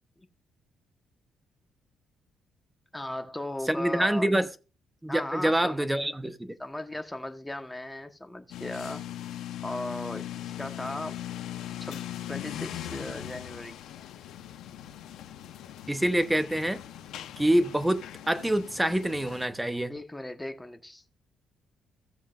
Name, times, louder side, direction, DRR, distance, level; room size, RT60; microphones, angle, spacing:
voice 1, 2.9-4.3 5.1-5.9 6.6-9.0 9.6-11.2 11.8-13.8 19.9-21.1, left 1 dB, 10° left, 1.2 m, -37 dB
voice 2, 3.8-4.5 5.0-6.5 15.9-16.8 17.4-19.9, right 1 dB, 10° right, 0.9 m, -26 dB
sound 1, 8.5-19.5, left 12 dB, 85° left, 0.9 m, -40 dB
15.5 x 7.2 x 2.5 m
cardioid pair, 90°, 0 cm